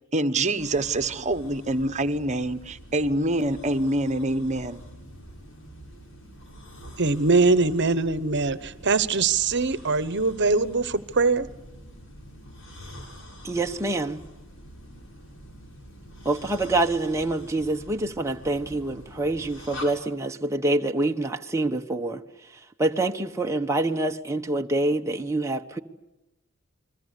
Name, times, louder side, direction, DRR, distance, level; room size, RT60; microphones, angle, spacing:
voice 1, 0.1-4.8, right 1 dB, 35° right, 1.3 m, -25 dB
sound 1, 0.6-19.9, equal, 65° left, 7.8 m, -45 dB
voice 2, 7.0-11.5, right 3 dB, 55° right, 1.1 m, -22 dB
voice 3, 13.4-14.2 16.2-22.2 22.8-25.8, right 2 dB, 15° right, 1.1 m, -26 dB
29.5 x 21.5 x 8.3 m
head